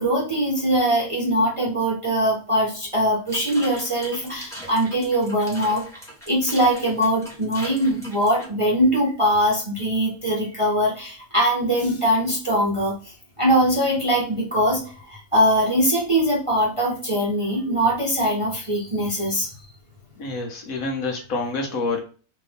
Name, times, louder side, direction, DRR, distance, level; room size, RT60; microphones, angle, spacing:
voice 1, 0.0-5.8 6.3-19.5, equal, 25° right, -3 dB, 0.8 m, -22 dB
sound 1, 3.3-8.5, equal, ahead, 1.0 m, -40 dB
voice 2, 20.2-22.0, left 3 dB, 70° left, 3 dB, 1.2 m, -27 dB
3.3 x 2.7 x 3.4 m, 0.38 s
omnidirectional pair, 1.6 m